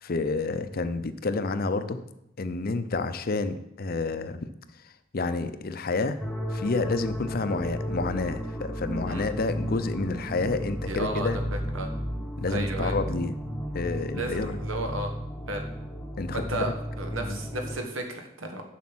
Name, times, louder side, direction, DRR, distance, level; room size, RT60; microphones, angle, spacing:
voice 1, 0.0-2.0 2.4-4.4 5.1-6.2 6.5-11.4 12.4-13.5 13.7-14.6 16.2-16.7 17.2-17.4, left 3 dB, 50° left, 11 dB, 0.6 m, -29 dB
sound 1, 6.2-17.8, equal, 5° left, 0.9 m, -34 dB
voice 2, 10.8-11.9 12.5-12.9 14.1-15.1 15.5-15.6 16.3-16.7 17.0-18.6, right 2 dB, 85° right, 4 dB, 1.5 m, -33 dB
7.3 x 6.6 x 6.1 m, 0.84 s
head